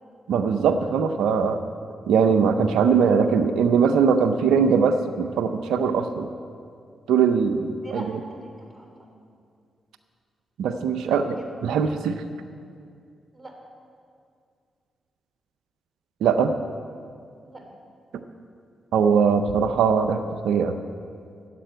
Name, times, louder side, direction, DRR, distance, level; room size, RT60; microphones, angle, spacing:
voice 1, 0.3-1.6 2.1-6.3 7.1-7.8 10.6-11.2 11.6-12.1 16.2-16.5 18.9-20.7, right 6 dB, 80° right, 8 dB, 0.5 m, -21 dB
voice 2, 7.6-9.1 11.1-11.5 13.3-13.6 17.4-17.7, right 1 dB, 15° right, 1 dB, 3.1 m, -42 dB
10.0 x 7.5 x 9.1 m, 2.3 s
supercardioid pair, 45°, 0 cm